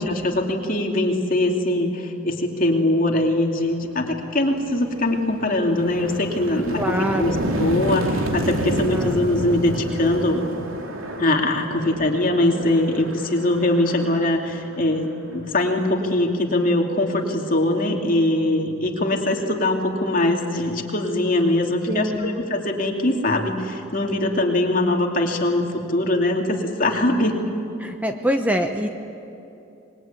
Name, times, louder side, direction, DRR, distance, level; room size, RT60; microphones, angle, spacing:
voice 1, 0.0-10.4 11.2-15.1 15.3-27.4, left 1 dB, 40° left, 2 dB, 2.7 m, -22 dB
sound 1, 4.0-4.1 4.6-15.3, right 1 dB, 80° right, 2.7 m, -29 dB
voice 2, 6.8-7.4 8.6-9.1 11.8-12.0 21.9-22.4 27.8-28.9, equal, 5° right, 5 dB, 0.9 m, -25 dB
26.0 x 22.0 x 9.1 m, 2.9 s
head